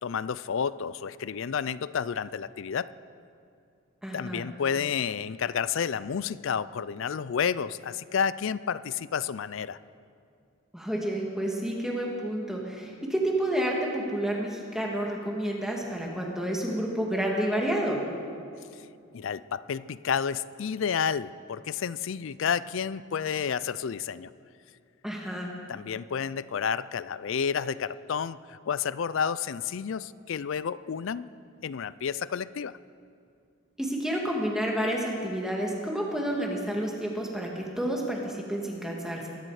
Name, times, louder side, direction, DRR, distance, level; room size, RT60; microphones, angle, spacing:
voice 1, 0.0-2.9 4.1-9.8 19.1-24.3 25.7-31.3 31.6-32.8, left 7 dB, 65° left, 18 dB, 0.4 m, -30 dB
voice 2, 4.0-4.5 10.7-18.0 25.0-25.5 33.8-39.3, right 1 dB, ahead, -1 dB, 1.9 m, -30 dB
22.5 x 12.0 x 4.9 m, 2.4 s
head